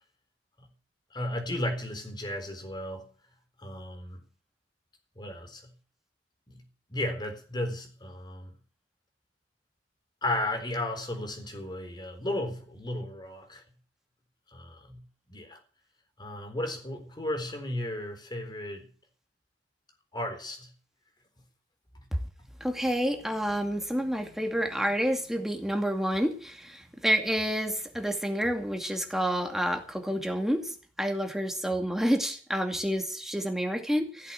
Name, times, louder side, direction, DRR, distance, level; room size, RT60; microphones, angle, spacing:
voice 1, 1.1-3.1 3.6-4.2 5.2-5.7 6.5-6.6 6.9-8.6 10.2-13.6 14.5-15.6 16.2-18.9 20.1-20.7, left 1 dB, 25° left, 4.1 m, -34 dB
voice 2, 22.6-34.3, equal, ahead, 2.4 m, -29 dB
16.5 x 8.1 x 7.8 m
head